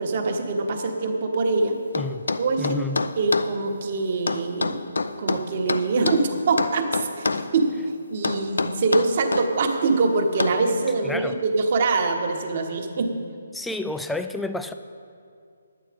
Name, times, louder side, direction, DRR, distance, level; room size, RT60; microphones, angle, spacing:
voice 1, 0.0-1.8 2.4-2.8 3.2-4.8 5.2-7.7 8.1-13.1, right 3 dB, 45° right, 3 dB, 1.2 m, -24 dB
sound 1, 1.9-3.5 4.3-6.2 6.6-7.5 8.2-9.5 10.4-10.6, left 3 dB, 85° left, 0.5 m, -26 dB
voice 2, 2.0-2.3 2.6-3.0 11.0-11.4 13.5-14.7, left 2 dB, 5° left, 9 dB, 0.3 m, -30 dB
10.5 x 8.9 x 5.1 m, 2.3 s
hypercardioid pair, 160°, 0 cm